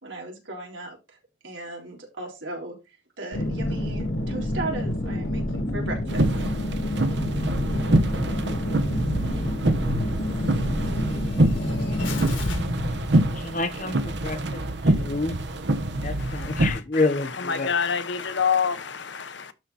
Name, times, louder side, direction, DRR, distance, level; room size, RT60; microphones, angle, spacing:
voice 1, 0.0-1.2 1.4-6.3, right 2 dB, 85° right, 3.8 m, -37 dB
sound 1, 3.3-13.8 14.2-14.3, left 1 dB, 85° left, 2.4 m, -28 dB
sound 2, 6.1-16.7, right 1 dB, 65° right, 1.1 m, -25 dB
voice 2, 13.3-14.6 14.9-15.4 16.0-17.7, left 3 dB, 40° left, 1.0 m, -28 dB
voice 3, 16.2-19.5, left 6 dB, 70° left, 1.0 m, -28 dB
12.0 x 4.2 x 4.1 m
head